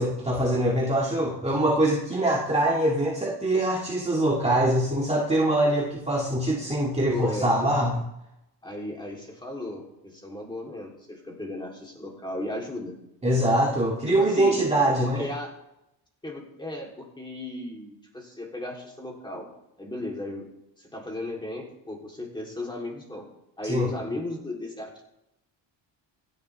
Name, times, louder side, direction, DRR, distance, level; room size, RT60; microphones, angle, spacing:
voice 1, 0.0-8.0 13.2-15.2 23.6-23.9, right 1 dB, 15° right, -3 dB, 2.1 m, -23 dB
voice 2, 7.1-7.5 8.6-13.0 14.1-14.6 15.0-15.5 16.2-19.5 19.8-20.5 20.8-23.3 23.6-25.0, left 2 dB, 10° left, -1 dB, 3.4 m, -35 dB
27.0 x 11.0 x 3.5 m, 0.86 s
cardioid pair, 160°, 44 cm